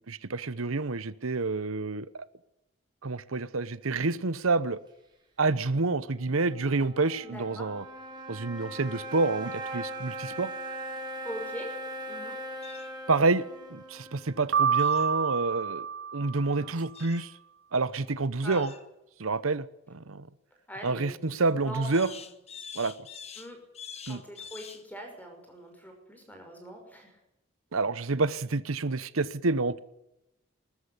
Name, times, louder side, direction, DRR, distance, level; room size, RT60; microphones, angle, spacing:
voice 1, 0.0-2.3 3.0-4.8 5.4-7.8 8.3-10.5 13.1-13.4 13.7-15.9 16.1-17.3 17.7-18.7 19.2-20.3 20.8-22.1 22.7-22.9 24.1-24.2 27.7-29.8, right 3 dB, 90° right, 0.9 m, -28 dB
sound 1, 6.0-15.4, right 1 dB, 20° right, 4.9 m, -40 dB
voice 2, 7.2-7.8 11.2-11.7 12.1-12.4 16.4-16.7 18.4-18.7 20.7-22.3 23.4-23.6 24.1-27.2, equal, 10° left, 5.9 m, -42 dB
sound 2, 12.6-12.9 14.8-15.1 16.9-17.3 18.5-18.9 21.9-24.9, left 7 dB, 30° left, 1.3 m, -45 dB
Piano, 14.5-16.7, right 7 dB, 70° right, 2.0 m, -28 dB
20.5 x 13.5 x 9.8 m
head